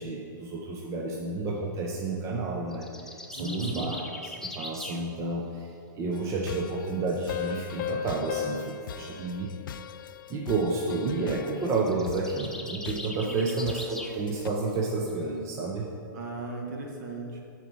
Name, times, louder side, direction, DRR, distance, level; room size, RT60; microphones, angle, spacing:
voice 1, 0.0-2.9 3.3-4.0 4.2-5.7 5.9-9.5 10.3-15.9, right 3 dB, 25° right, -2 dB, 0.9 m, -30 dB
sound 1, 2.7-5.0 11.6-14.2, left 1 dB, 5° left, 0.6 m, -40 dB
voice 2, 3.3-3.9 13.2-13.6 16.1-17.4, right 2 dB, 55° right, 0 dB, 1.7 m, -37 dB
sound 2, 6.1-14.5, left 8 dB, 85° left, 0.4 m, -44 dB
Piano, 7.3-10.6, left 8 dB, 45° left, 0.7 m, -36 dB
9.0 x 4.6 x 6.1 m, 2.5 s
hypercardioid pair, 135°, 11 cm